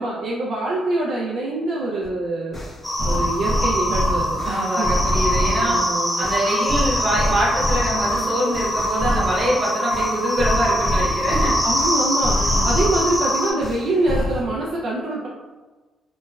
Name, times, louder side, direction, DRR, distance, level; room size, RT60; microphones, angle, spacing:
voice 1, 0.0-2.6 3.0-4.9 5.6-6.3 11.6-15.3, right 2 dB, 65° right, -4 dB, 0.3 m, -25 dB
sound 1, 2.0-2.1 2.5-5.8 6.2-9.5 9.9-13.2 13.6-14.5, left 1 dB, 50° left, 0.8 m, -26 dB
sound 2, 2.8-13.5, equal, 5° left, 0.7 m, -23 dB
voice 2, 4.4-5.8 6.2-11.5 12.3-12.7, equal, 40° right, -6 dB, 1.1 m, -24 dB
3.0 x 2.2 x 2.2 m, 1.3 s
cardioid pair, 90°, 0 cm